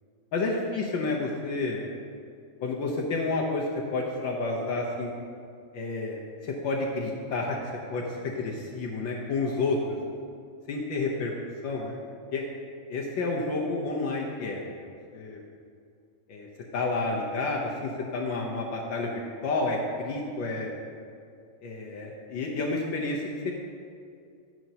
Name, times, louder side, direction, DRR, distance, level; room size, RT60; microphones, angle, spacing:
voice 1, 0.3-1.8 2.6-3.6 3.9-5.1 5.7-7.6 7.9-10.0 10.7-11.3 11.6-12.0 12.3-12.4 12.9-15.4 16.3-16.5 16.7-19.1 19.4-20.7 21.6-23.5, left 3 dB, 70° left, -2 dB, 1.6 m, -30 dB
11.5 x 9.1 x 2.8 m, 2.3 s
omnidirectional pair, 2.2 m